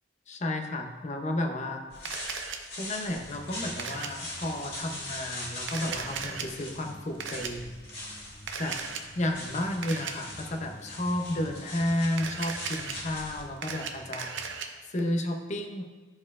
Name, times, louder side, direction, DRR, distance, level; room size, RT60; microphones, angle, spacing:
voice 1, 0.3-1.9 2.8-7.7 8.6-8.8 9.1-14.3 14.9-15.8, left 1 dB, 40° left, 4 dB, 0.6 m, -32 dB
sound 1, 1.9-13.4, left 1 dB, 55° left, 2.1 m, -42 dB
Camera, 2.0-2.6 3.8-4.1 5.6-6.4 7.2-7.5 8.5-9.0 9.8-10.1 12.1-12.9 13.4-14.7, right 6 dB, 80° right, 0.6 m, -36 dB
sound 2, 3.2-14.6, left 1 dB, ahead, 1.7 m, -51 dB
13.0 x 4.3 x 2.4 m, 1.4 s
head